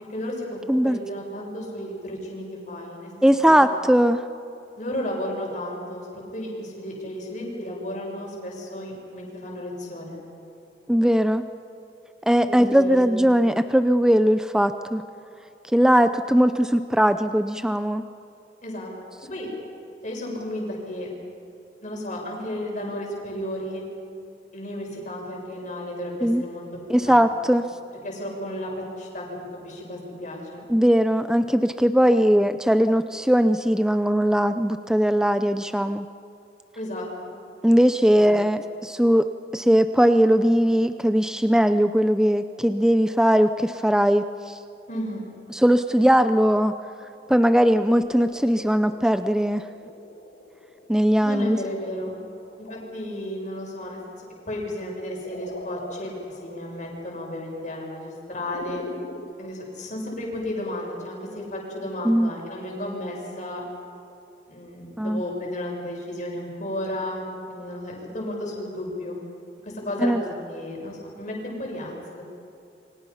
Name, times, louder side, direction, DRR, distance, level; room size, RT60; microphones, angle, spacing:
voice 1, 0.1-3.1 3.4-3.6 4.8-10.2 12.5-13.3 18.6-18.9 19.3-19.5 20.0-21.1 21.8-23.8 24.5-26.6 27.0-27.2 27.5-27.6 28.0-29.2 29.6-30.6 36.7-37.3 38.1-38.3 44.9-45.3 51.2-52.2 52.6-58.8 59.4-63.6 64.5-69.2 69.6-72.2, left 1 dB, 45° left, -2 dB, 7.0 m, -33 dB
voice 2, 0.7-1.0 3.2-4.2 10.9-11.4 12.3-15.0 15.7-18.0 26.2-26.4 26.9-27.7 30.7-36.1 37.6-39.3 39.5-44.6 45.5-46.7 47.3-49.7 50.9-51.6 62.0-62.3 65.0-65.2 70.0-70.2, equal, 5° right, 10 dB, 0.5 m, -19 dB
sound 1, 47.6-59.3, left 1 dB, 65° left, 1.5 m, -44 dB
29.5 x 24.5 x 5.7 m, 2.8 s
head